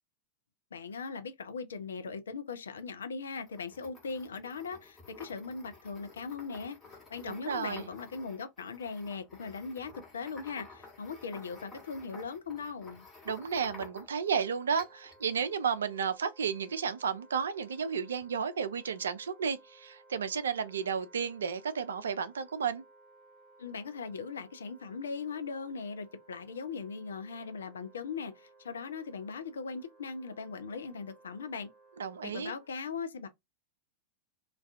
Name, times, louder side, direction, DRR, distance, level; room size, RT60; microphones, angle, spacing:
voice 1, 0.7-6.8 7.1-13.1 23.6-31.7 32.2-33.3, left 5 dB, 70° left, 0.4 m, -39 dB
sound 1, 3.3-14.3 14.8-15.2, left 3 dB, 15° left, 1.0 m, -52 dB
voice 2, 7.3-7.9 13.3-22.8 32.0-32.5, right 6 dB, 65° right, 0.3 m, -32 dB
Wind instrument woodwind instrument, 14.1-32.7, right 2 dB, 25° right, 0.8 m, -60 dB
2.3 x 2.2 x 2.4 m
figure-of-eight pair, 90°, 0 cm